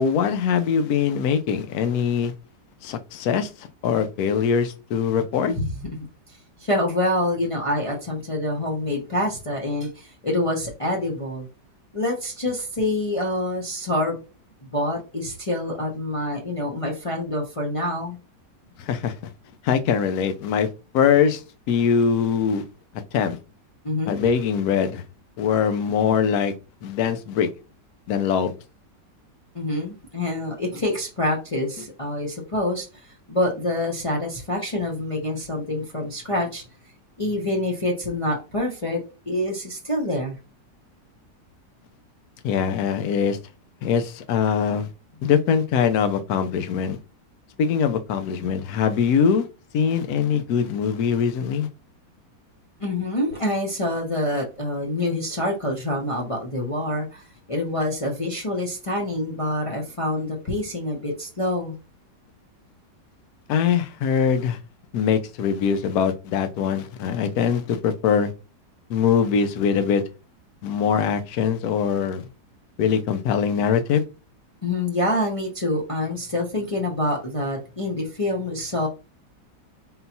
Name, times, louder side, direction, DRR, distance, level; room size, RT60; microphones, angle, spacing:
voice 1, 0.0-2.3 2.8-5.5 18.8-19.3 19.6-20.7 20.9-21.4 21.7-22.6 23.1-23.4 24.1-25.0 25.4-26.5 26.8-27.5 28.1-28.5 42.4-43.4 43.8-44.9 45.2-47.0 47.6-49.5 49.7-51.7 63.5-64.6 64.9-68.3 68.9-70.0 70.6-72.3 72.8-74.0, left 7 dB, 70° left, 1.0 m, -22 dB
voice 2, 6.3-11.5 11.9-14.2 14.6-18.2 23.8-24.2 29.5-36.6 37.2-39.0 39.3-40.4 52.8-61.8 74.6-78.9, left 1 dB, 50° left, 0.4 m, -26 dB
4.0 x 3.8 x 2.7 m
omnidirectional pair, 1.9 m